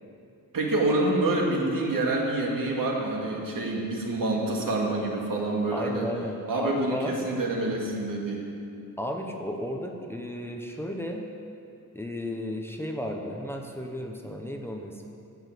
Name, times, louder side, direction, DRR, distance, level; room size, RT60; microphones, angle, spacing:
voice 1, 0.5-6.1 6.5-8.4, right 2 dB, 75° right, -1 dB, 2.3 m, -27 dB
voice 2, 5.7-7.2 9.0-11.2 11.9-15.1, left 1 dB, 5° left, 2 dB, 0.9 m, -34 dB
16.0 x 6.2 x 8.2 m, 2.6 s
wide cardioid pair, 160°, 34 cm